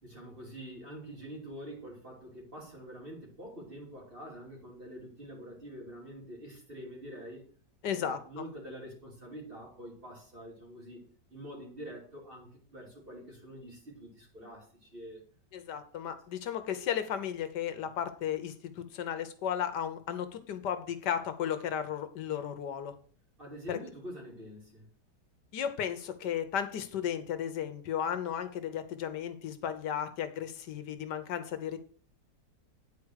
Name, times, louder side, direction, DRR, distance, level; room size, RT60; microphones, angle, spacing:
voice 1, 0.0-7.4 7.8-15.2 23.4-24.9, equal, 30° right, -2 dB, 3.2 m, -46 dB
voice 2, 7.8-8.4 15.5-22.9 23.7-23.8 25.5-31.8, left 9 dB, 85° left, 10 dB, 1.5 m, -34 dB
9.3 x 4.8 x 6.4 m, 0.43 s
omnidirectional pair, 1.8 m